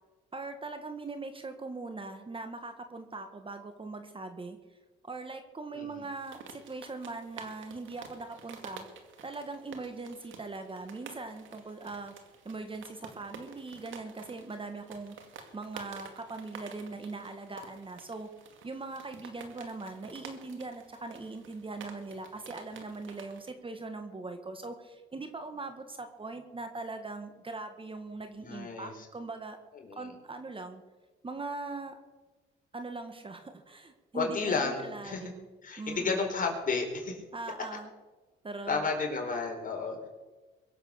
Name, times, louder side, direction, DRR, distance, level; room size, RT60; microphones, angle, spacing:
voice 1, 0.3-4.6 5.0-8.8 9.2-12.1 12.4-15.2 15.5-18.3 18.6-29.6 29.9-30.8 31.2-32.0 32.7-35.5 35.8-36.3 37.3-37.9 38.4-38.9, right 3 dB, 25° right, 7 dB, 1.7 m, -41 dB
voice 2, 5.7-6.0 28.4-29.1 29.7-30.1 34.1-35.2 35.6-37.2 38.7-40.1, left 4 dB, 45° left, 2 dB, 4.5 m, -32 dB
sound 1, 6.2-23.5, right 5 dB, 75° right, 2.3 m, -50 dB
23.0 x 8.0 x 6.6 m, 1.2 s
cardioid pair, 90°, 20 cm